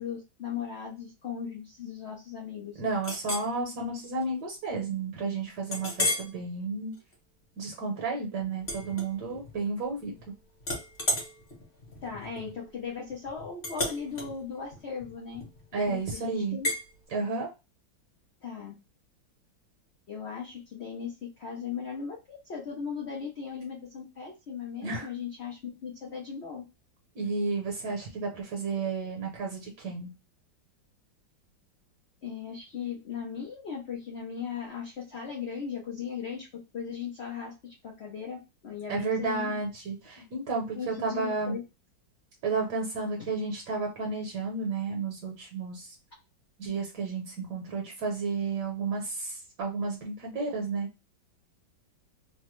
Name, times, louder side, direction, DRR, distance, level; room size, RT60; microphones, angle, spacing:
voice 1, 0.0-2.8 12.0-15.4 15.7-16.7 18.4-18.8 20.1-26.6 32.2-36.5 36.7-39.6 40.7-41.6 43.2-43.3, left 7 dB, 80° left, -2 dB, 0.5 m, -38 dB
voice 2, 2.8-6.9 7.6-10.3 15.7-16.6 17.1-17.5 24.8-25.1 27.1-30.1 38.9-41.6 42.4-45.9 46.6-50.9, right 4 dB, 65° right, 0 dB, 1.2 m, -32 dB
Chink clink, 3.0-3.5 4.0-4.2 4.7-4.8 5.7-6.3 6.9-7.1 8.6-9.6 9.9-10.3 10.6-15.7 16.6-16.8, left 1 dB, 35° left, 0.9 m, -34 dB
3.3 x 2.1 x 3.0 m, 0.27 s
omnidirectional pair, 2.1 m